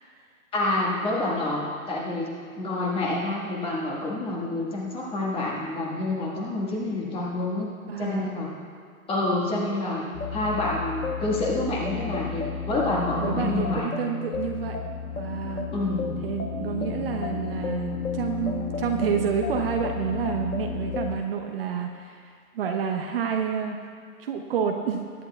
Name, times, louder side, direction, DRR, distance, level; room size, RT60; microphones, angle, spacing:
voice 1, 0.5-2.3 2.6-7.7 8.0-8.5 9.1-10.0 10.3-13.9 15.7-16.1 16.7-16.9, left 2 dB, 15° left, -3 dB, 1.6 m, -28 dB
voice 2, 7.9-8.3 13.2-14.8 15.1-15.7 16.2-23.8 24.2-25.0, right 7 dB, 40° right, 3 dB, 0.9 m, -29 dB
sound 1, 10.1-21.2, left 6 dB, 85° left, 1.5 m, -32 dB
22.0 x 10.5 x 2.3 m, 2.1 s
hypercardioid pair, 140°, 43 cm